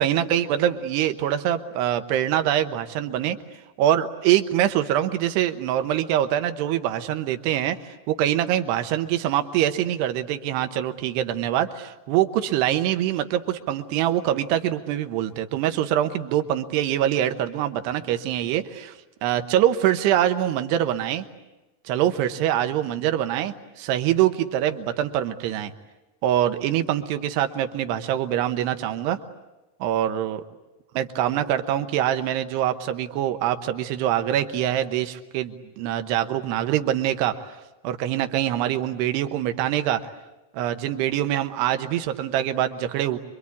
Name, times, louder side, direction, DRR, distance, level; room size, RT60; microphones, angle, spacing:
voice 1, 0.0-3.4 3.8-21.2 21.9-25.7 26.2-29.2 29.8-30.4 31.0-37.6 37.8-40.1 40.5-43.2, right 11 dB, 85° right, 8 dB, 3.2 m, -24 dB
26.5 x 24.0 x 8.5 m, 1.0 s
omnidirectional pair, 4.6 m